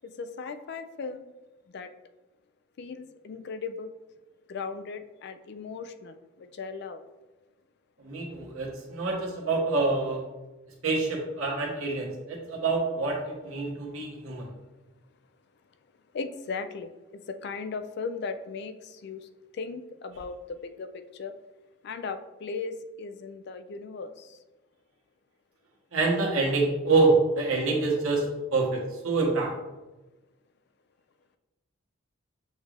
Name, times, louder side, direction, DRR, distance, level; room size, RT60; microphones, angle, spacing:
voice 1, 0.2-1.3 1.7-1.9 2.8-3.9 4.5-7.0 16.1-16.9 17.3-19.2 19.5-21.3 21.8-24.4, left 4 dB, 55° left, 9 dB, 0.3 m, -37 dB
voice 2, 8.0-10.2 10.8-14.5 25.9-29.5, right 3 dB, 85° right, -2 dB, 1.3 m, -26 dB
6.3 x 2.5 x 3.3 m, 1.1 s
head